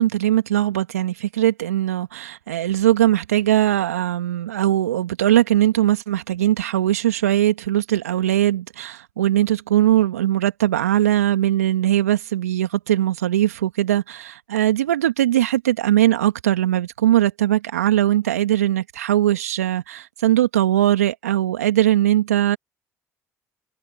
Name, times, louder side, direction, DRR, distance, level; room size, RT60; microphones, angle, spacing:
voice 1, 0.0-22.6, right 13 dB, 85° right, 2.0 m, -20 dB
hypercardioid pair, 55°, 8 cm